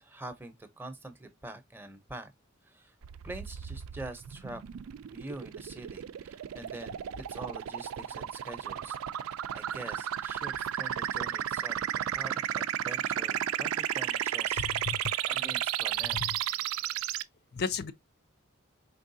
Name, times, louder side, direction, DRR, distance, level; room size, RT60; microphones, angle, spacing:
voice 1, 0.0-2.3 2.6-2.9 3.2-4.6 5.1-7.0 7.3-9.3 9.5-11.8 12.1-14.6 15.3-16.3, right 2 dB, 10° right, 0.6 m, -45 dB
sound 1, 3.0-17.2, right 11 dB, 90° right, 0.4 m, -33 dB
voice 2, 14.5-15.3 16.1-16.3 17.5-17.9, left 6 dB, 50° left, 0.5 m, -35 dB
4.6 x 3.5 x 2.6 m
head